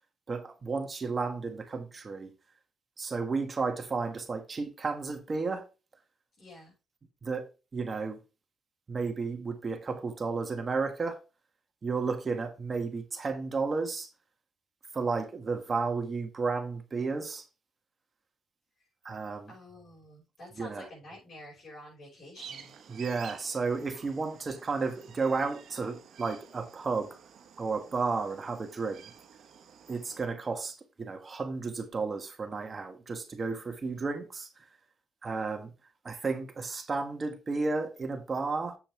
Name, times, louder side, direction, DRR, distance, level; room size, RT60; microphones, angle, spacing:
voice 1, 0.3-2.3 3.0-5.7 7.2-8.2 8.9-11.2 11.8-14.1 14.9-17.4 19.0-19.5 20.6-20.9 22.9-27.2 27.6-29.1 29.9-34.5 35.2-35.7 36.0-38.8, right 4 dB, 35° right, 1.8 m, -33 dB
voice 2, 6.4-6.7 19.5-22.8, left 1 dB, 50° left, 5.7 m, -49 dB
sound 1, 22.3-30.3, right 7 dB, 65° right, 1.4 m, -51 dB
7.6 x 6.9 x 3.4 m
cardioid pair, 90°, 0 cm